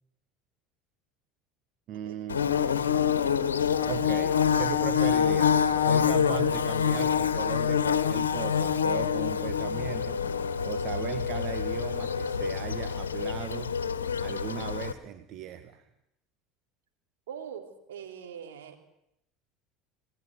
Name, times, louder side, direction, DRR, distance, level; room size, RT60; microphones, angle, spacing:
voice 1, 1.9-2.7 3.8-10.2 10.6-13.8 14.2-15.8, right 10 dB, 55° right, 9 dB, 1.6 m, -37 dB
Bird / Buzz, 2.3-14.9, left 7 dB, 85° left, 1.3 m, -26 dB
voice 2, 17.3-18.8, right 8 dB, 75° right, 4 dB, 3.5 m, -42 dB
27.0 x 19.5 x 8.0 m, 0.82 s
hypercardioid pair, 75°, 0 cm